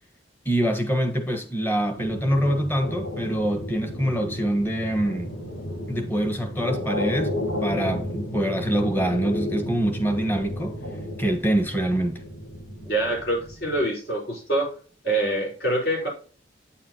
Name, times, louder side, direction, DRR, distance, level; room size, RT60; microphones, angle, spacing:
voice 1, 0.4-5.3 5.9-7.3 7.6-10.7 11.2-12.2, right 1 dB, 10° left, 1.3 m, -25 dB
sound 1, 2.0-13.8, left 1 dB, 85° left, 3.6 m, -33 dB
voice 2, 12.8-14.7 15.0-16.1, right 1 dB, 60° left, 4.8 m, -25 dB
9.1 x 7.3 x 2.9 m
head